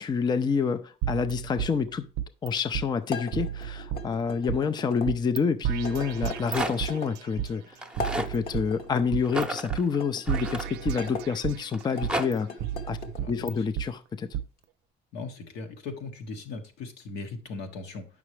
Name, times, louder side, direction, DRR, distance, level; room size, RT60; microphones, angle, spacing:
voice 1, 0.0-2.1 2.4-7.8 8.2-12.5 12.9-13.0 13.3-14.3, left 5 dB, 25° left, 0.4 m, -28 dB
sound 1, 1.0-2.5 2.7-2.9 3.3-4.6 5.1-5.4 5.6-7.5 8.0-9.4 9.7-9.8 10.3-11.6 12.0-13.9 14.3-14.4, right 11 dB, 85° right, 0.5 m, -33 dB
sound 2, 3.1-5.1 5.8-7.1 7.9-9.1 9.9-11.2 11.8-13.2, left 3 dB, 60° left, 1.3 m, -39 dB
Rattle, 6.1-7.0 7.7-8.3 9.2-11.2 11.7-12.3, right 1 dB, 5° right, 0.8 m, -33 dB
voice 2, 13.2-13.7 15.1-18.1, left 3 dB, 85° left, 1.5 m, -38 dB
8.5 x 6.0 x 3.2 m
cardioid pair, 110°, 17 cm